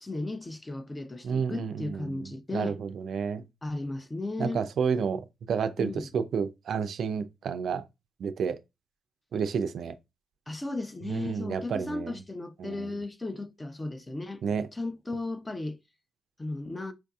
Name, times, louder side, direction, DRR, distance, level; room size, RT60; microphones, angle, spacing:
voice 1, 0.0-2.8 3.6-4.6 5.8-6.1 10.5-14.4 14.7-15.8 16.4-16.9, left 2 dB, 20° left, 0.5 m, -35 dB
voice 2, 1.2-3.4 4.4-7.8 8.2-8.6 9.3-9.9 11.1-12.1 12.6-13.0 14.4-14.7, right 6 dB, 65° right, 0.4 m, -30 dB
4.5 x 2.6 x 2.3 m
cardioid pair, 80°, 0 cm